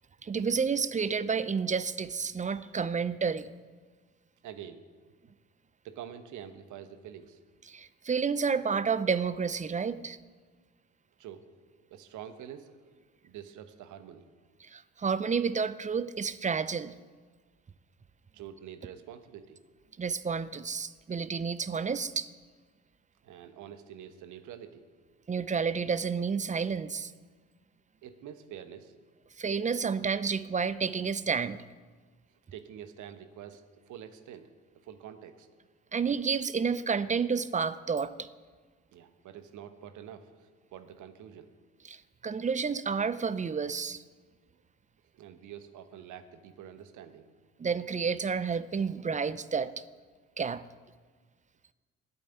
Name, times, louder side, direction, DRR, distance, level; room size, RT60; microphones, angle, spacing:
voice 1, 0.2-3.5 7.7-10.2 14.6-16.9 20.0-22.3 25.3-27.1 29.4-31.6 35.9-38.3 41.9-44.0 47.6-49.8 50.4-50.6, right 5 dB, 20° right, 16 dB, 0.6 m, -30 dB
voice 2, 4.4-4.8 5.8-7.4 11.2-12.8 13.2-14.3 18.3-19.6 23.2-24.8 28.0-28.9 32.5-34.5 34.8-35.5 38.9-41.5 45.1-47.3, right 9 dB, 60° right, 10 dB, 1.1 m, -46 dB
10.5 x 8.6 x 9.2 m, 1.5 s
hypercardioid pair, 55°, 34 cm